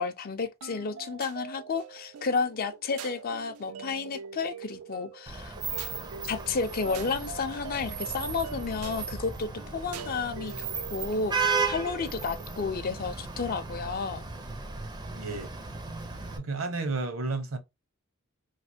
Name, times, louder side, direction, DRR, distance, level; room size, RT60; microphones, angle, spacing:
voice 1, 0.0-5.5 6.2-11.3 11.7-14.2, left 4 dB, 45° left, 0.4 m, -32 dB
sound 1, 0.6-12.7, right 7 dB, 90° right, 0.5 m, -45 dB
Vehicle horn car horn honking / Traffic noise roadway noise, 5.3-16.4, right 4 dB, 20° right, 0.5 m, -35 dB
voice 2, 15.1-15.5 16.4-17.6, right 3 dB, 70° right, 0.9 m, -32 dB
3.2 x 2.5 x 2.7 m
head